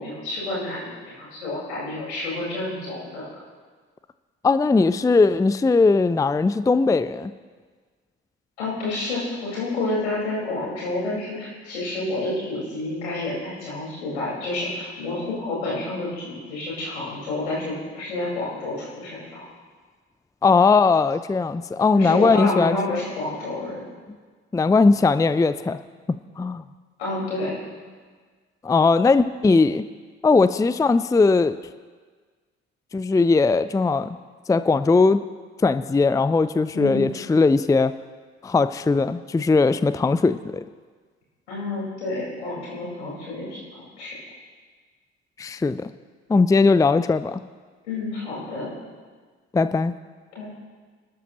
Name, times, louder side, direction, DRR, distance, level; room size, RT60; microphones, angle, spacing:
voice 1, 0.0-3.3 8.6-19.4 21.9-23.8 27.0-27.5 36.7-37.0 41.5-44.1 47.9-48.7 50.3-50.5, left 2 dB, 80° left, -6 dB, 4.9 m, -29 dB
voice 2, 4.4-7.3 20.4-23.0 24.5-25.8 26.4-26.6 28.6-29.8 30.2-31.6 32.9-34.2 34.5-35.2 35.6-37.9 38.4-40.6 45.4-45.9 46.3-47.4 49.5-49.9, left 4 dB, 10° left, 13 dB, 0.5 m, -19 dB
28.0 x 13.0 x 3.0 m, 1.5 s
figure-of-eight pair, 45°, 33 cm